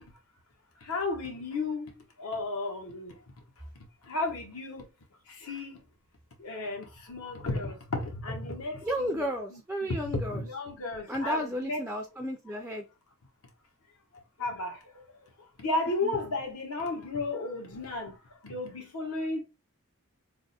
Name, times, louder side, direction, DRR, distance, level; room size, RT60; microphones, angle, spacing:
voice 1, 0.8-1.9 2.2-3.2 4.0-4.9 5.3-5.8 6.4-11.8 14.4-15.0 15.6-18.2 18.4-19.4, left 2 dB, 75° left, 1.1 m, -34 dB
voice 2, 8.8-10.4 11.1-12.8 16.0-16.1, equal, 5° right, 0.4 m, -33 dB
3.4 x 2.1 x 4.0 m
head